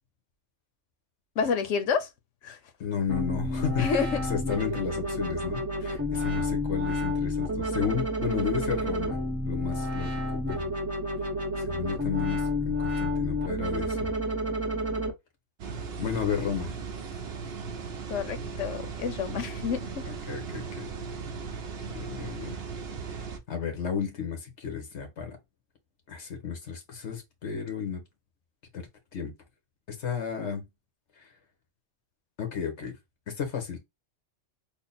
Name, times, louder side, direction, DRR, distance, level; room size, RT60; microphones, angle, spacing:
voice 1, 1.4-2.1 2.4-2.6 3.8-4.2 18.1-20.1, left 6 dB, 85° left, 1.1 m, -29 dB
voice 2, 2.8-3.8 4.3-9.2 9.5-10.1 10.5-10.7 11.6-14.1 16.0-16.7 20.1-20.9 21.9-22.6 23.1-25.4 26.1-28.0 28.7-29.3 29.9-30.7 31.2-31.3 32.4-32.9 33.3-33.8, left 7 dB, 70° left, 1.4 m, -33 dB
sound 1, 3.1-15.1, left 1 dB, 15° right, 0.7 m, -30 dB
sound 2, 15.6-23.4, right 5 dB, 60° right, 0.8 m, -37 dB
3.7 x 2.0 x 3.9 m
omnidirectional pair, 1.2 m